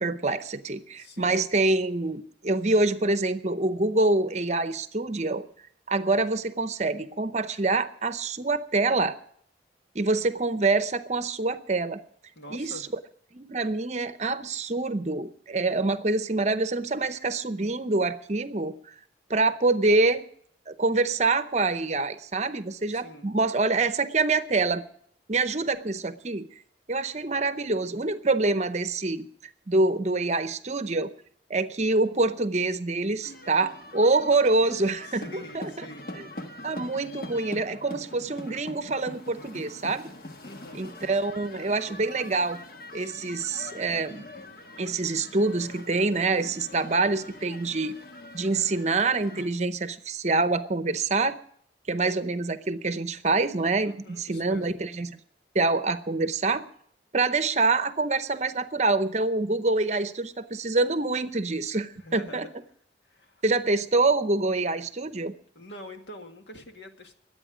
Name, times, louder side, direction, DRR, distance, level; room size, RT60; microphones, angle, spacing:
voice 1, 0.0-5.4 5.9-9.2 9.9-12.0 12.5-12.8 13.3-18.9 19.3-20.2 20.7-24.8 25.3-26.5 26.9-29.3 29.7-31.1 31.5-35.8 36.2-36.3 36.6-40.1 40.7-42.6 42.9-44.2 44.8-47.9 48.3-51.4 51.9-55.1 55.5-56.6 57.1-62.5 63.4-65.3, right 3 dB, 35° right, 12 dB, 0.7 m, -26 dB
voice 2, 1.0-1.4 12.3-12.9 22.9-23.3 34.9-36.1 40.4-40.8 53.8-54.8 62.0-62.5 63.1-63.4 65.6-67.1, left 1 dB, 75° left, 4 dB, 1.9 m, -45 dB
sound 1, 33.2-49.5, left 1 dB, 50° left, 1.3 m, -43 dB
22.5 x 8.9 x 5.0 m, 0.63 s
head